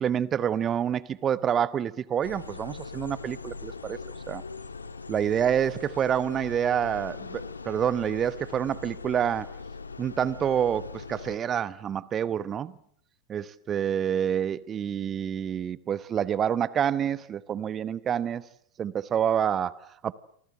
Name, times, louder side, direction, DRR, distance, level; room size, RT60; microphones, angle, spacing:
voice 1, 0.0-4.0 4.3-4.4 5.1-9.5 10.0-12.7 13.3-18.5 18.8-20.1, right 9 dB, 25° right, 1.0 m, -27 dB
sound 1, 2.2-11.4, left 4 dB, 75° left, 2.2 m, -41 dB
29.0 x 25.0 x 7.7 m
figure-of-eight pair, 90°, 0 cm